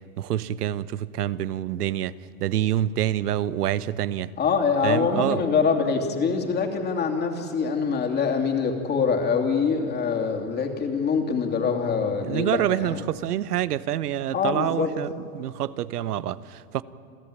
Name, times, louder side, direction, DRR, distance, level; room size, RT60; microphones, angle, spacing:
voice 1, 0.2-4.3 4.8-5.4 12.2-16.8, right 12 dB, 90° right, 0.9 m, -27 dB
voice 2, 4.4-13.0 14.3-14.9, left 5 dB, 20° left, 2.8 m, -24 dB
28.5 x 15.0 x 8.6 m
supercardioid pair, 140°, 45 cm